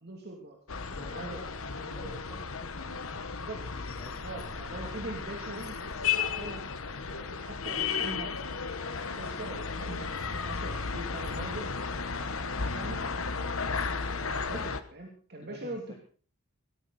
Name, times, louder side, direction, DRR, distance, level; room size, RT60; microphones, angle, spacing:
voice 1, 0.0-0.6 1.1-2.3 3.5-3.6 4.2-5.8 6.1-6.6 7.1-8.7 9.1-10.1 10.4-11.7 12.1-13.4 13.8-16.0, right 2 dB, 50° right, 0 dB, 3.0 m, -43 dB
sound 1, 0.7-14.8, left 5 dB, 70° left, 1.3 m, -34 dB
voice 2, 0.9-4.5 15.4-16.0, left 1 dB, 20° left, 3 dB, 1.7 m, -51 dB
18.5 x 14.5 x 4.3 m, 0.42 s
head